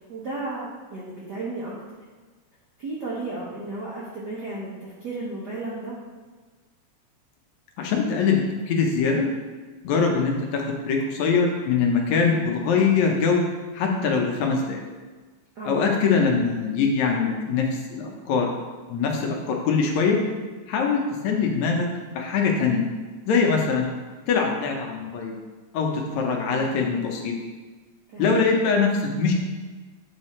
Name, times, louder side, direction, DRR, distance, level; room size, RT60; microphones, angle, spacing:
voice 1, 0.1-1.7 2.8-6.0 15.5-15.8 28.1-28.4, right 2 dB, 75° right, -5 dB, 0.9 m, -33 dB
voice 2, 7.8-8.4 8.7-9.3 9.8-13.4 13.7-14.8 15.6-18.5 18.9-20.2 20.7-21.9 22.1-22.8 23.3-23.9 24.3-25.4 25.7-27.3 28.2-29.3, left 5 dB, 75° left, 1 dB, 2.1 m, -22 dB
8.7 x 3.4 x 4.2 m, 1.4 s
omnidirectional pair, 3.4 m